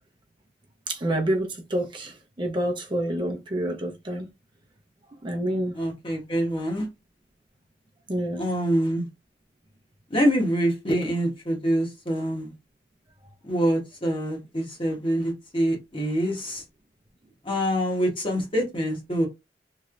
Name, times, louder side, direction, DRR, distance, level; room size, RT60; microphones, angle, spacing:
voice 1, 0.9-4.3 5.2-5.7 8.1-8.4, right 1 dB, 30° right, 0.6 m, -28 dB
voice 2, 5.7-6.9 8.4-9.1 10.1-12.5 13.4-16.6 17.4-19.3, equal, 30° left, 1.1 m, -25 dB
3.1 x 2.7 x 2.4 m
head